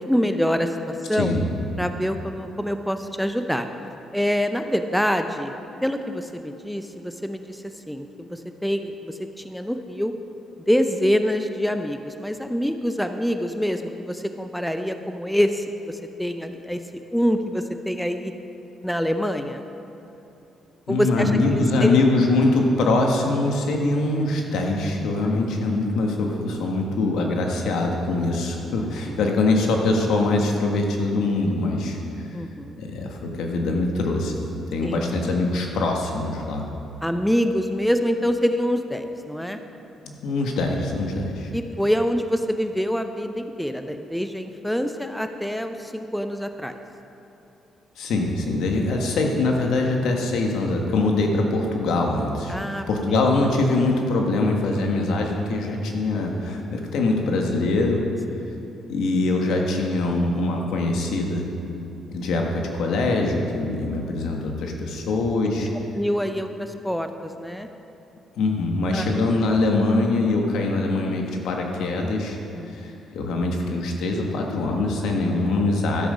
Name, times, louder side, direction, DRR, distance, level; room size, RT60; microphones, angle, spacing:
voice 1, 0.0-1.3 1.8-3.7 4.1-5.6 5.8-10.1 10.7-18.3 18.8-19.6 20.9-22.0 25.2-25.3 28.8-29.2 32.3-32.8 34.8-35.0 37.0-39.6 41.5-46.7 52.5-53.2 66.0-67.7 68.9-69.1 72.5-73.0, equal, ahead, 7 dB, 0.6 m, -26 dB
voice 2, 20.9-32.0 32.8-34.3 34.7-36.7 40.0-41.5 48.0-58.0 58.9-61.5 62.1-65.7 68.4-72.4 72.8-76.1, left 2 dB, 80° left, 1 dB, 1.5 m, -23 dB
13.0 x 7.7 x 5.1 m, 2.8 s
cardioid pair, 90°, 0 cm